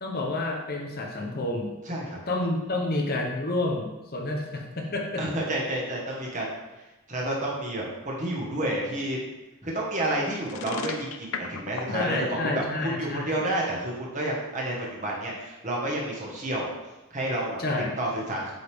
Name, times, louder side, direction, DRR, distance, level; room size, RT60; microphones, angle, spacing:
voice 1, 0.0-1.7 2.3-5.2 11.9-13.3 17.6-17.9, left 2 dB, 45° left, 1 dB, 1.0 m, -29 dB
voice 2, 1.9-2.2 5.2-6.5 7.1-9.2 9.6-12.6 13.0-16.7 17.1-17.6 18.0-18.5, right 1 dB, 35° right, -3 dB, 1.7 m, -30 dB
sound 1, 10.4-12.6, left 5 dB, 70° left, 0.6 m, -33 dB
7.9 x 5.2 x 3.6 m, 1.1 s
head